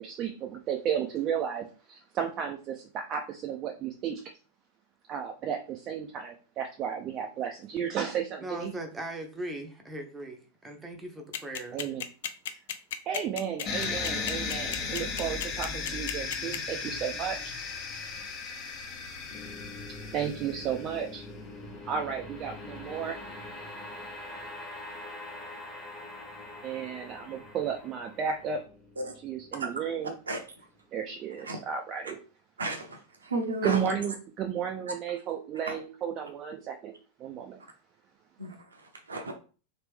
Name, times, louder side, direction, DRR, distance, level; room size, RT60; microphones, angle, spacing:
voice 1, 0.0-4.2 5.1-8.7 11.7-12.0 13.1-17.4 20.1-21.2 21.8-23.2 26.6-28.6 29.2-30.2 30.9-32.2 33.6-36.9 37.2-37.6, right 8 dB, 35° right, 3 dB, 0.4 m, -33 dB
voice 2, 8.4-11.8, right 1 dB, 10° right, 3 dB, 0.8 m, -39 dB
sound 1, 11.3-16.6, left 10 dB, 55° left, 0.4 m, -33 dB
sound 2, 13.6-21.2, left 4 dB, 35° left, 0.9 m, -36 dB
sound 3, 19.3-30.5, left 2 dB, 10° left, 1.1 m, -44 dB
voice 3, 32.6-33.8 35.7-35.8 38.4-38.5 39.1-39.3, right 2 dB, 75° right, 3 dB, 0.7 m, -32 dB
3.0 x 2.9 x 3.4 m, 0.37 s
figure-of-eight pair, 90°, 0 cm